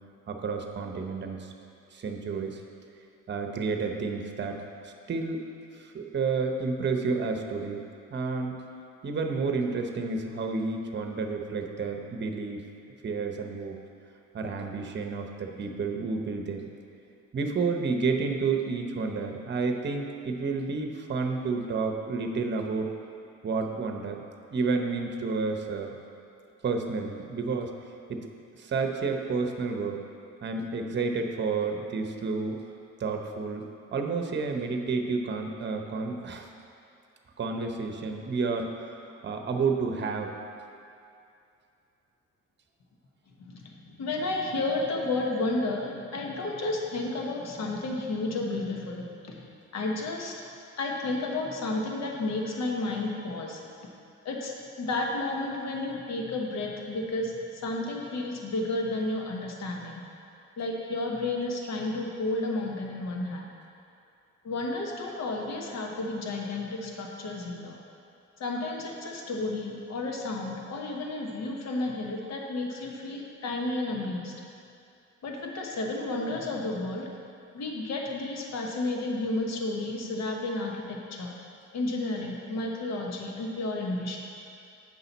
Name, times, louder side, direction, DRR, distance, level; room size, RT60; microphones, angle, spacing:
voice 1, 0.3-1.5 1.9-2.6 3.3-4.6 4.8-5.4 5.8-7.8 8.1-8.6 9.0-12.6 13.0-13.7 14.3-16.7 17.3-22.9 23.4-24.2 24.5-25.9 26.6-27.7 28.1-28.3 28.6-30.0 30.4-32.6 33.0-33.6 33.9-36.5 37.4-38.7 39.2-40.3, right 4 dB, 35° right, 3 dB, 0.8 m, -30 dB
voice 2, 43.4-49.4 49.7-50.3 50.8-53.6 54.2-60.0 60.6-63.5 64.4-67.8 68.4-74.3 75.2-77.1 77.5-81.3 81.7-84.2, left 2 dB, 60° left, 0 dB, 1.1 m, -32 dB
8.5 x 5.6 x 4.1 m, 2.5 s
cardioid pair, 90°, 30 cm